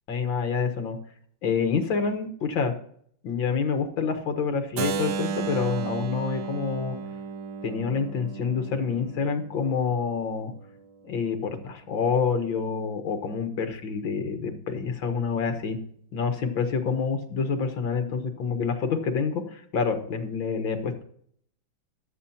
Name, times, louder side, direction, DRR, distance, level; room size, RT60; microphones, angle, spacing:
voice 1, 0.1-1.0 1.4-2.7 3.2-7.0 7.6-10.5 11.0-15.8 16.1-21.0, left 5 dB, 75° left, 7 dB, 2.1 m, -27 dB
Keyboard (musical), 4.8-10.6, right 6 dB, 70° right, 1.6 m, -34 dB
14.5 x 11.5 x 2.8 m, 0.63 s
omnidirectional pair, 2.2 m